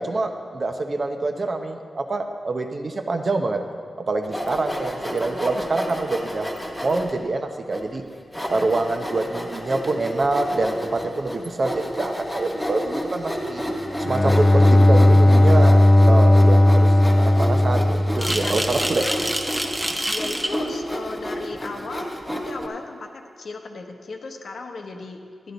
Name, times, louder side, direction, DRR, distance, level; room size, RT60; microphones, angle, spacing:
voice 1, 0.0-3.6 4.0-6.5 6.8-8.0 8.5-13.6 14.0-19.0, right 2 dB, 45° right, 5 dB, 0.8 m, -25 dB
Sawing, 4.2-7.1 7.7-7.8 8.3-22.7, equal, 5° left, 1.6 m, -31 dB
Bowed string instrument, 13.8-18.8, left 1 dB, 25° left, 0.4 m, -15 dB
voice 2, 18.2-19.1 19.9-25.5, left 3 dB, 70° left, 3 dB, 1.0 m, -36 dB
sound 1, 18.2-20.6, right 1 dB, 10° right, 0.7 m, -27 dB
12.0 x 11.0 x 3.9 m, 2.2 s
wide cardioid pair, 135°, 0 cm